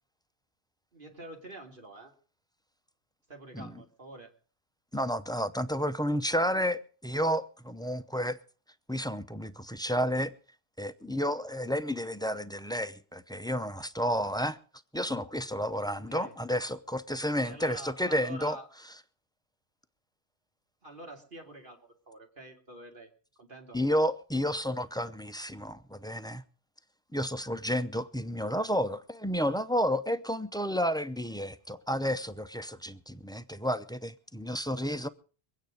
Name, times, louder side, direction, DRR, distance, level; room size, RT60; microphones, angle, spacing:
voice 1, 0.9-2.1 3.3-4.3 15.9-16.3 17.2-18.7 20.8-23.1 23.4-23.8, right 1 dB, 55° right, 2.9 m, -47 dB
voice 2, 4.9-8.4 8.9-10.3 10.8-14.6 14.9-18.6 23.7-26.4 27.1-35.1, equal, 5° left, 0.5 m, -31 dB
23.5 x 9.4 x 5.1 m
omnidirectional pair, 1.0 m